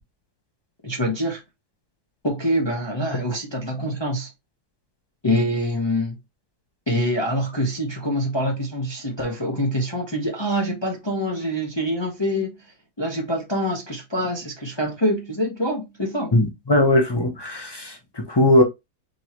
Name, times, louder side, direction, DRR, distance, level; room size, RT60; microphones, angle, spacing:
voice 1, 0.8-1.4 2.2-4.3 5.2-6.2 6.9-12.5 13.0-16.3, equal, 20° left, 0.7 m, -25 dB
voice 2, 16.3-18.6, left 1 dB, 40° left, 0.3 m, -19 dB
4.6 x 3.0 x 2.8 m
omnidirectional pair, 1.8 m